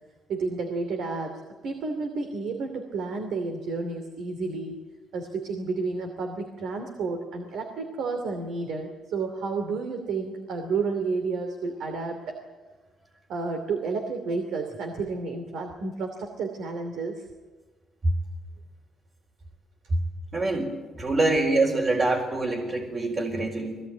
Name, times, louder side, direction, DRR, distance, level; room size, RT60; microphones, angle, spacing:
voice 1, 0.3-4.8 5.1-12.4 13.3-17.3, right 4 dB, 75° right, 5 dB, 2.8 m, -31 dB
voice 2, 20.3-23.8, right 2 dB, 40° right, -2 dB, 4.1 m, -25 dB
22.5 x 18.0 x 9.3 m, 1.3 s
cardioid pair, 90°, 0 cm